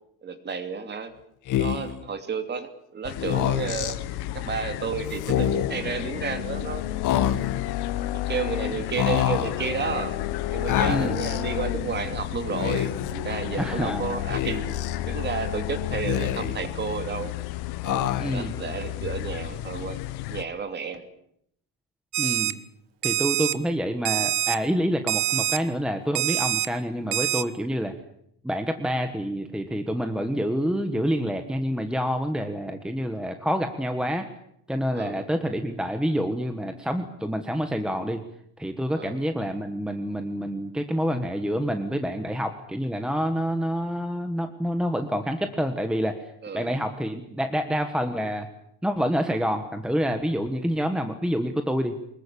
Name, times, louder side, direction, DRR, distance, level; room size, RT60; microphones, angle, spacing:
voice 1, 0.2-1.1 1.6-4.0 4.3-6.8 8.1-10.2 10.5-14.7 15.0-17.3 17.8-20.0 20.3-21.1 34.9-35.2 39.0-39.2 46.4-46.8, right 5 dB, 25° right, 9 dB, 2.7 m, -32 dB
Speech, 1.5-2.0 3.2-4.0 5.2-5.8 7.0-7.7 9.0-9.6 10.7-11.4 12.5-13.1 14.3-15.0 15.9-16.7 17.8-18.5, left 11 dB, 45° left, 2.3 m, -26 dB
sound 1, 3.0-20.4, left 14 dB, 65° left, 1.6 m, -32 dB
voice 2, 13.5-14.0 18.2-18.5 22.2-22.6 23.0-27.9 28.4-34.3 34.7-38.2 38.6-48.5 48.8-52.0, equal, ahead, 7 dB, 1.3 m, -27 dB
Alarm, 22.1-22.5 23.0-23.5 24.1-24.6 25.1-25.6 26.1-26.7 27.1-27.4, right 15 dB, 75° right, 1.8 m, -25 dB
25.0 x 21.5 x 8.6 m, 0.72 s
cardioid pair, 170°, 41 cm